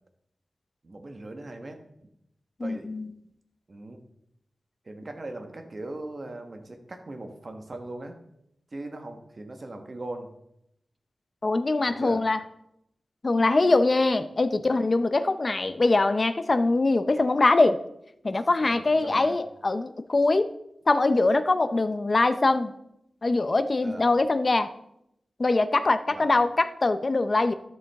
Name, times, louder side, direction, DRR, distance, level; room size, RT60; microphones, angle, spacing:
voice 1, 0.8-1.8 2.6-2.9 3.7-4.0 4.8-8.2 8.7-10.3 11.8-12.2 18.6-19.4 23.8-24.1 26.1-26.4, right 2 dB, 45° right, 5 dB, 1.3 m, -39 dB
voice 2, 2.6-3.1 11.4-12.4 13.2-17.8 18.2-20.5 20.9-22.7 23.2-24.7 25.4-27.5, left 2 dB, 40° left, 11 dB, 0.6 m, -23 dB
12.5 x 7.1 x 3.5 m, 0.77 s
wide cardioid pair, 95°, 0 cm